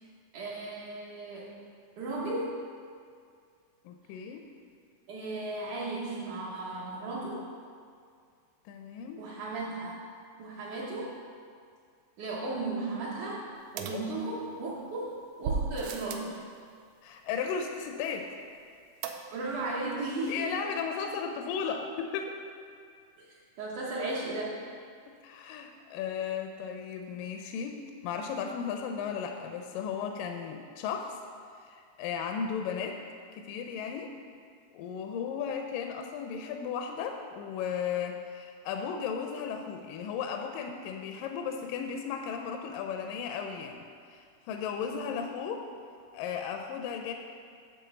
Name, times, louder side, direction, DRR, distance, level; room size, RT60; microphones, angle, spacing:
voice 1, 0.3-1.6 2.0-2.6 5.1-7.4 9.2-10.0 10.4-11.1 12.2-13.4 13.7-16.3 19.3-20.5 23.6-24.6 44.9-45.0, right 2 dB, 70° right, -7 dB, 2.2 m, -35 dB
voice 2, 3.9-4.5 8.7-9.2 13.9-14.1 17.0-18.3 20.3-22.4 25.2-27.8 28.0-31.2 31.6-33.0 33.4-34.1 34.7-45.7 46.1-47.1, left 7 dB, 80° left, 4 dB, 2.1 m, -35 dB
sound 1, 13.8-14.7 15.4-16.4 19.0-19.6 19.9-20.0 20.3-20.4, right 5 dB, 90° right, 1.7 m, -36 dB
9.4 x 3.6 x 6.8 m, 2.2 s
omnidirectional pair, 4.0 m